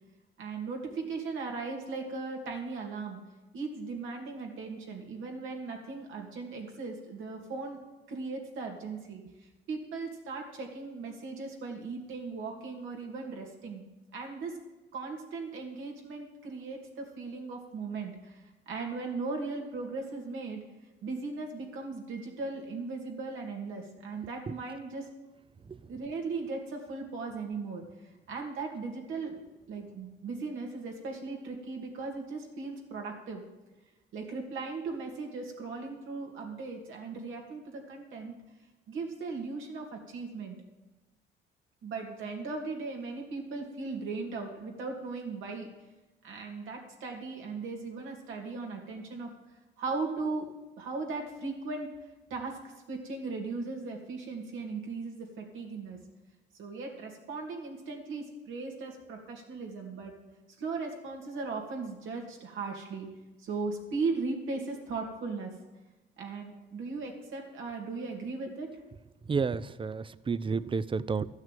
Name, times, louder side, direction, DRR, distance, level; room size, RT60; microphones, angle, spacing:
voice 1, 0.4-3.2 3.5-7.8 8.1-9.2 9.7-13.8 14.1-14.6 14.9-20.6 21.0-25.1 25.9-27.8 28.3-29.4 29.7-33.4 34.1-38.3 38.9-40.6 41.8-45.7 46.2-49.3 49.8-50.5 50.8-51.9 52.3-52.6 52.9-56.0 56.5-60.1 60.6-63.1 63.4-65.5 66.2-68.7, right 4 dB, 80° right, 1 dB, 2.6 m, -37 dB
voice 2, 69.3-71.3, right 5 dB, 25° right, 18 dB, 0.5 m, -31 dB
13.5 x 6.4 x 9.2 m, 1.1 s
cardioid pair, 90°, 20 cm